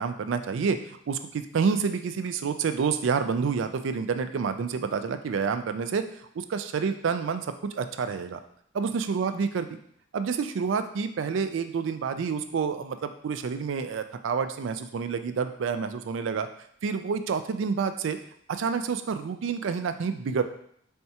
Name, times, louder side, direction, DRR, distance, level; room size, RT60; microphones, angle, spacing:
voice 1, 0.0-6.0 6.4-8.4 8.7-9.7 10.1-16.5 16.8-18.2 18.5-20.4, right 5 dB, 85° right, 9 dB, 0.4 m, -28 dB
4.3 x 3.4 x 2.8 m, 0.67 s
head